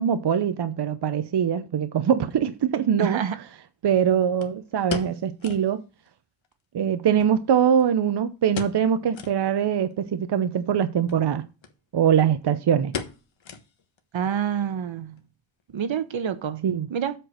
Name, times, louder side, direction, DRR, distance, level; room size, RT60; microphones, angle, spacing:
voice 1, 0.0-3.2 3.8-5.8 6.7-11.4 11.9-12.9 16.6-16.9, right 8 dB, 60° right, 0.7 m, -22 dB
sound 1, 2.3-2.4 4.4-5.7 6.1-6.2 6.4-6.5 7.2-8.0 8.5-8.9 9.1-9.4 9.9-10.0 11.0-11.2 11.6-11.7 12.0-12.4 12.9-14.0 14.3-14.4 15.0-15.3 15.6-15.7, left 6 dB, 75° left, 1.4 m, -36 dB
voice 2, 3.0-3.3 14.1-15.1 15.7-16.6 16.9-17.1, right 8 dB, 80° right, 1.1 m, -27 dB
7.8 x 4.5 x 6.4 m
wide cardioid pair, 145°, 46 cm